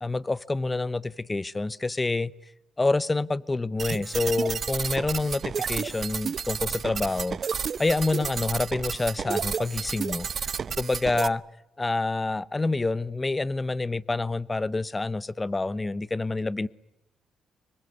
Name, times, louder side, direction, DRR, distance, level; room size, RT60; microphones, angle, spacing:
voice 1, 0.0-2.3 2.8-7.4 7.8-10.5 10.8-11.4 11.8-16.7, left 3 dB, 20° left, 0.9 m, -27 dB
sound 1, 3.8-11.3, right 6 dB, 45° right, 0.9 m, -31 dB
26.0 x 23.5 x 9.5 m
cardioid pair, 90°, 0 cm